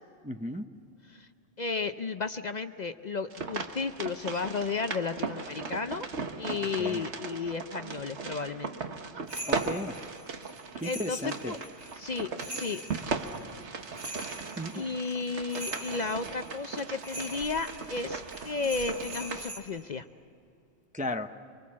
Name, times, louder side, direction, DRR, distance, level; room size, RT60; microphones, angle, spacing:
voice 1, 0.2-0.6 6.5-7.0 9.5-9.9 10.8-11.5 14.6-14.8 20.9-21.3, left 1 dB, 10° right, 7 dB, 0.5 m, -35 dB
voice 2, 1.6-6.1 6.4-8.9 10.8-11.6 11.9-12.8 14.7-20.1, left 4 dB, 45° left, 9 dB, 0.7 m, -33 dB
sound 1, 3.3-19.5, right 4 dB, 80° right, 1.5 m, -38 dB
sound 2, 9.3-19.6, right 1 dB, 50° right, 5.3 m, -44 dB
24.5 x 24.5 x 7.3 m, 2.7 s
omnidirectional pair, 1.2 m